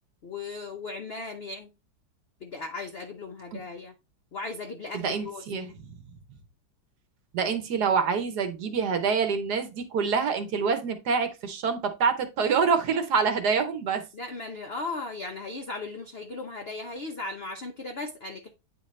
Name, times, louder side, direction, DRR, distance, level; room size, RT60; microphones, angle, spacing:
voice 1, 0.2-1.7 2.4-3.9 4.3-5.7 14.1-18.5, left 3 dB, 80° left, 0.5 m, -37 dB
voice 2, 4.9-5.7 7.3-14.0, right 5 dB, 60° right, 1.3 m, -26 dB
9.1 x 3.8 x 3.1 m
omnidirectional pair, 2.1 m